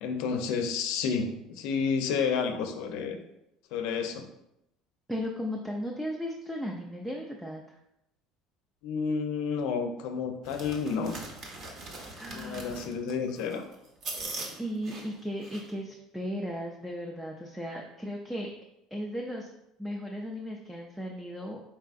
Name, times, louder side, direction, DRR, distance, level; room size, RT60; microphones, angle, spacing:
voice 1, 0.0-3.2 3.7-4.2 8.8-11.1 12.3-13.6, left 5 dB, 75° left, 6 dB, 0.5 m, -30 dB
voice 2, 5.1-7.8 12.1-12.9 14.6-18.5 18.9-19.5 19.8-21.8, equal, ahead, -1 dB, 0.4 m, -36 dB
sound 1, 10.4-15.7, right 2 dB, 40° right, 0.8 m, -41 dB
4.6 x 3.5 x 2.5 m, 0.83 s
cardioid pair, 155°, 0 cm